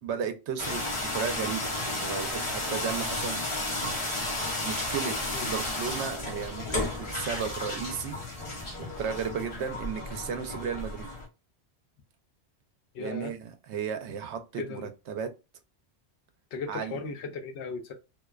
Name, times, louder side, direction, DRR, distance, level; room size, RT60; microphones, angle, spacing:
voice 1, 0.0-3.5 3.8-4.0 4.6-5.2 5.4-8.2 8.8-11.1 13.0-15.3 16.7-17.0, right 7 dB, 80° right, 0.9 m, -34 dB
sound 1, 0.6-11.2, left 2 dB, 30° left, 0.7 m, -33 dB
voice 2, 12.9-13.3 14.5-14.9 16.5-17.9, left 4 dB, 80° left, 0.9 m, -36 dB
2.4 x 2.2 x 2.3 m
omnidirectional pair, 1.1 m